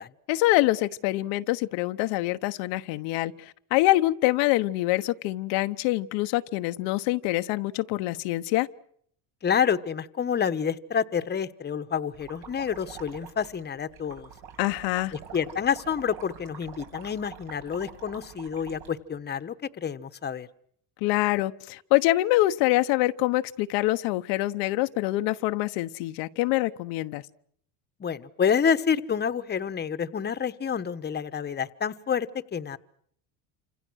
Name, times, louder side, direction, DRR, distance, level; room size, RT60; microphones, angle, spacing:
voice 1, 0.3-8.7 14.6-15.1 21.0-27.2, left 17 dB, 80° left, 9 dB, 1.0 m, -25 dB
voice 2, 9.4-14.3 15.1-20.5 28.0-32.8, left 7 dB, 25° left, 12 dB, 1.1 m, -28 dB
sound 1, 12.1-18.9, right 7 dB, 70° right, 6.0 m, -46 dB
28.5 x 26.5 x 6.3 m, 0.66 s
cardioid pair, 115°, 42 cm